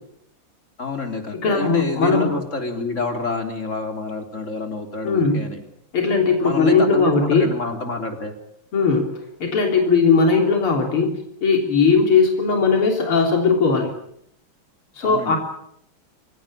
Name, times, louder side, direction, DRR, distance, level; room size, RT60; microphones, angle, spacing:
voice 1, 0.8-5.6 6.4-8.3 15.0-15.4, left 3 dB, 35° left, 5 dB, 3.6 m, -28 dB
voice 2, 1.4-2.3 5.0-5.4 5.9-7.5 8.7-9.1 9.4-13.9 15.0-15.4, left 4 dB, 80° left, 3 dB, 4.4 m, -18 dB
29.0 x 16.5 x 8.8 m, 0.73 s
omnidirectional pair, 2.4 m